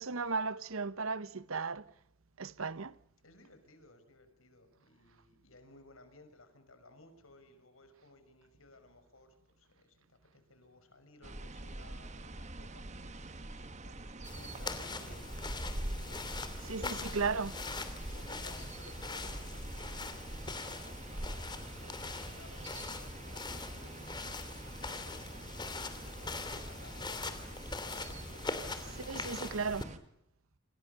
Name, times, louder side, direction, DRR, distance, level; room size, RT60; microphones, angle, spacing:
voice 1, 0.0-1.9 2.4-3.0 16.6-17.5 29.0-29.9, right 4 dB, 90° right, 0.9 m, -35 dB
voice 2, 3.2-17.2 18.1-24.2 24.8-29.7, left 2 dB, 90° left, 5.8 m, -60 dB
sound 1, 11.2-30.0, right 1 dB, 35° right, 1.4 m, -45 dB
sound 2, 14.2-29.8, left 3 dB, 20° left, 3.0 m, -42 dB
28.0 x 27.5 x 6.8 m
head